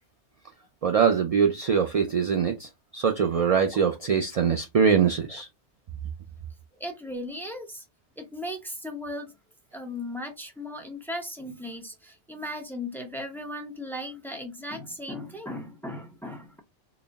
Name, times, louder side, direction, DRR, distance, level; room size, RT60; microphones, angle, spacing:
voice 1, 0.8-5.5, right 7 dB, 65° right, 0.3 m, -23 dB
voice 2, 6.8-7.8 8.2-9.3 9.7-16.6, left 1 dB, ahead, 0.6 m, -37 dB
4.0 x 2.1 x 3.3 m
omnidirectional pair, 1.1 m